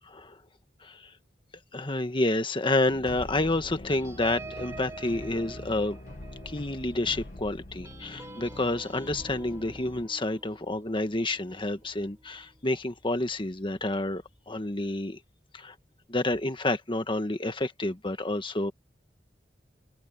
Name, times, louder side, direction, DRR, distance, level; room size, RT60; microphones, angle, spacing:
voice 1, 0.1-0.4 0.8-1.0 1.7-6.0 6.4-15.2 15.5-15.7 16.1-18.7, left 2 dB, 30° left, 1.6 m, -29 dB
sound 1, 2.9-10.1, left 1 dB, 50° left, 1.3 m, -44 dB
sound 2, 3.9-12.8 13.2-13.5 13.7-14.1, right 3 dB, 15° right, 3.4 m, -47 dB
open air
head